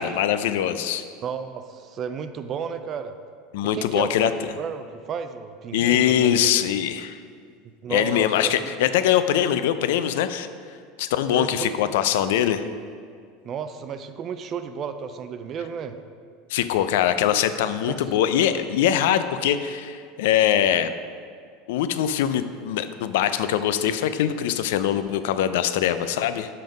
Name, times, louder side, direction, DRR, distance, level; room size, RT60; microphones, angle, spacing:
voice 1, 0.0-1.0 3.5-4.3 5.7-7.2 7.9-10.5 11.0-12.6 16.5-20.9 21.7-26.5, left 10 dB, 80° left, 11 dB, 0.4 m, -22 dB
voice 2, 1.2-3.1 3.7-4.3 4.6-6.5 7.8-8.7 11.3-11.7 13.4-15.9 17.9-18.0, right 7 dB, 30° right, 9 dB, 0.4 m, -32 dB
5.8 x 5.4 x 5.1 m, 2.1 s
supercardioid pair, 155°, 0 cm